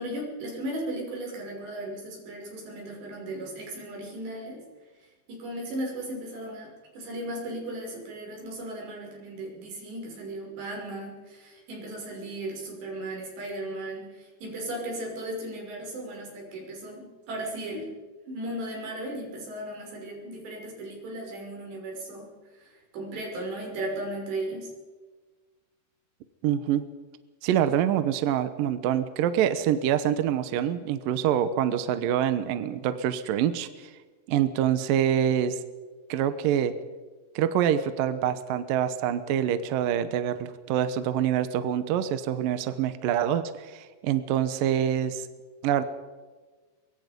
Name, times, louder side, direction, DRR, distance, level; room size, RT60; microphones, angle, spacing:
voice 1, 0.0-4.6 5.3-18.0 18.3-24.7, right 1 dB, 85° right, 0 dB, 8.4 m, -36 dB
voice 2, 26.4-26.9 27.4-33.9 34.3-35.6 36.1-36.7 37.4-45.3 45.6-45.8, right 10 dB, 70° right, 11 dB, 2.4 m, -26 dB
24.5 x 23.0 x 5.3 m, 1.3 s
omnidirectional pair, 4.8 m